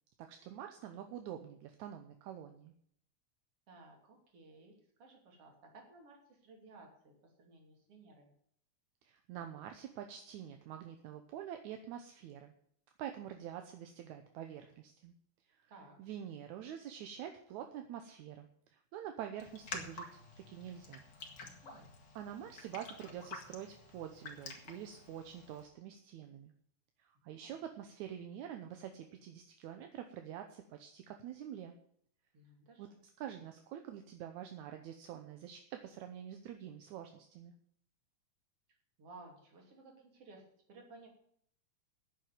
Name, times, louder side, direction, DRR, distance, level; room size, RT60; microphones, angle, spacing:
voice 1, 0.2-2.7 9.0-12.5 13.0-15.1 15.5-15.7 16.0-20.1 20.4-21.0 22.2-26.5 27.0-31.8 32.8-32.9 33.2-37.5, right 10 dB, 80° right, 6 dB, 2.2 m, -46 dB
voice 2, 3.7-8.3 15.7-16.0 21.6-21.9 27.2-27.6 32.3-33.0 39.0-41.1, right 3 dB, 50° right, 2 dB, 3.7 m, -57 dB
Raindrop, 19.4-25.6, left 3 dB, 40° left, 2.4 m, -49 dB
9.9 x 7.5 x 9.4 m, 0.65 s
omnidirectional pair, 3.4 m